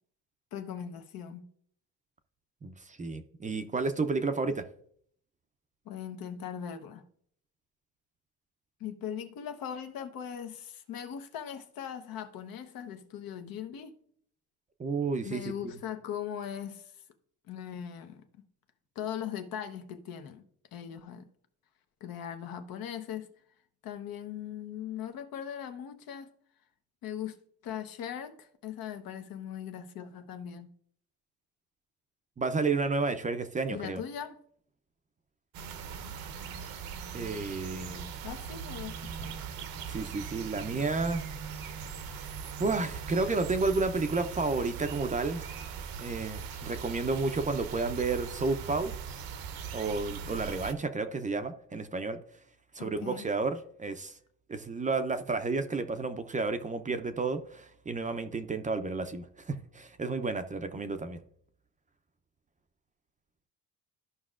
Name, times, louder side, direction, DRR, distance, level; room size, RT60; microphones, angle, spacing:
voice 1, 0.5-1.5 5.8-7.1 8.8-14.0 15.2-16.9 17.5-18.3 18.9-20.4 20.7-21.3 22.0-23.3 23.8-26.3 27.0-27.4 27.6-30.7 33.7-34.4 38.2-39.4 52.8-53.3, left 9 dB, 65° left, 1.0 m, -39 dB
voice 2, 2.6-4.7 14.8-15.5 32.4-34.0 37.1-38.1 39.9-41.2 42.0-42.2 42.6-45.7 46.0-48.9 49.7-52.2 52.7-54.1 54.5-61.2, right 3 dB, 20° right, 0.5 m, -31 dB
sound 1, 35.5-50.7, right 6 dB, 70° right, 0.9 m, -40 dB
13.5 x 5.4 x 2.4 m
cardioid pair, 105°, 37 cm